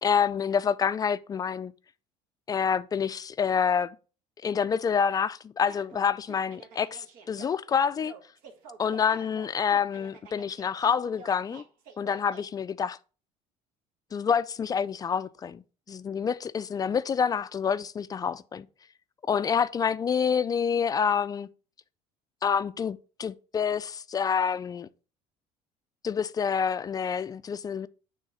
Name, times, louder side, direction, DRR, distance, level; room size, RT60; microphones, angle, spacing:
voice 1, 0.0-1.7 2.5-4.0 4.4-8.1 8.8-11.6 12.0-13.0 14.1-15.6 15.9-18.7 19.3-21.5 22.4-24.9 26.0-27.9, left 7 dB, 25° left, 0.3 m, -27 dB
sound 1, 5.7-12.4, right 5 dB, 75° right, 1.4 m, -49 dB
6.4 x 3.2 x 5.5 m
cardioid pair, 110°, 14 cm